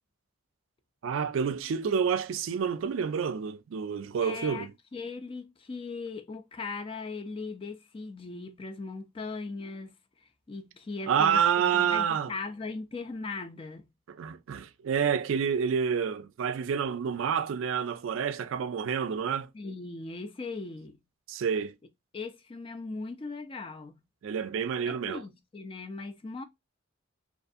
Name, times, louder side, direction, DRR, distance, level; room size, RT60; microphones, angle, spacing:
voice 1, 1.0-4.7 11.1-12.3 14.1-19.5 21.3-21.7 24.2-25.2, right 7 dB, 70° right, 0.3 m, -28 dB
voice 2, 4.2-13.9 19.5-21.0 22.1-24.0 24.8-26.4, left 3 dB, 25° left, 0.3 m, -39 dB
2.5 x 2.4 x 2.4 m
head